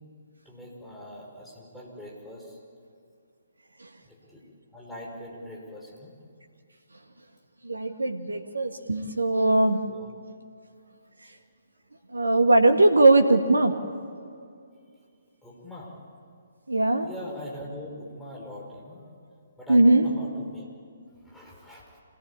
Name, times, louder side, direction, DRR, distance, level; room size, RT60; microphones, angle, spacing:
voice 1, 0.5-2.6 4.0-4.4 4.7-6.1 9.9-10.1 15.4-15.9 17.0-19.0 19.6-20.7 21.2-21.8, left 1 dB, 5° left, -4 dB, 5.7 m, -42 dB
voice 2, 7.6-9.8 12.1-13.7 16.7-17.1 19.7-20.1, right 2 dB, 75° right, 6 dB, 1.8 m, -20 dB
26.0 x 18.5 x 8.8 m, 2.4 s
figure-of-eight pair, 130°, 0 cm